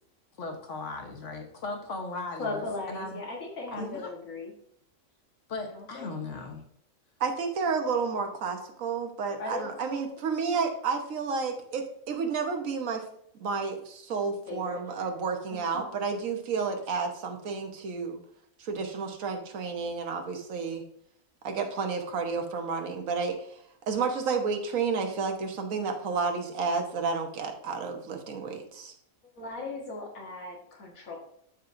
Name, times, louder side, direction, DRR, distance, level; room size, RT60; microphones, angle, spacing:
voice 1, 0.4-3.2 3.7-4.1 5.5-6.6, left 3 dB, 60° left, 3 dB, 1.5 m, -37 dB
voice 2, 2.3-4.5 5.7-6.1 9.4-10.6 14.5-14.8 15.5-15.8 29.4-31.2, left 3 dB, 80° left, -2 dB, 1.8 m, -38 dB
voice 3, 7.2-13.0 13.4-18.2 18.6-20.8 21.4-23.6 23.9-28.9, right 5 dB, 75° right, 4 dB, 1.4 m, -31 dB
12.0 x 4.5 x 2.6 m, 0.70 s
omnidirectional pair, 1.4 m